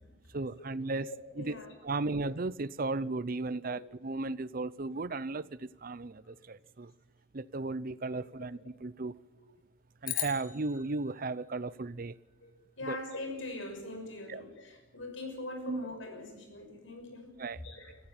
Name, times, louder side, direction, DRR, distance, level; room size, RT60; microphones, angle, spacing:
voice 1, 0.3-1.1 1.4-1.6 1.8-6.9 7.3-9.1 10.0-12.2 12.8-13.0 14.3-14.4 15.7-15.8 17.4-17.6, right 3 dB, 45° right, 0.7 m, -35 dB
voice 2, 1.0-1.7 3.7-3.8 12.4-12.5 12.8-17.4 17.6-18.0, left 2 dB, 80° left, 6.0 m, -42 dB
sound 1, 10.0-12.5, left 12 dB, 45° left, 1.9 m, -40 dB
25.0 x 14.5 x 8.9 m
head